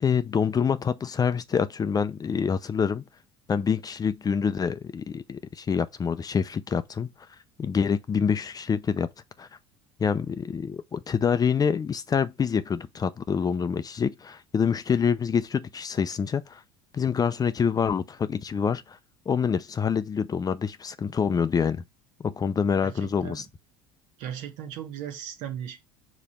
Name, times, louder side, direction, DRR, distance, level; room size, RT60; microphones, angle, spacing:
voice 1, 0.0-3.0 3.5-7.1 7.6-9.1 9.4-9.5 10.0-16.6 16.9-19.0 19.3-21.8 22.2-23.5, left 6 dB, 25° left, 0.6 m, -26 dB
voice 2, 22.8-23.4 24.2-25.8, right 9 dB, 70° right, 1.5 m, -37 dB
5.1 x 3.4 x 5.6 m
supercardioid pair, 95°, 14 cm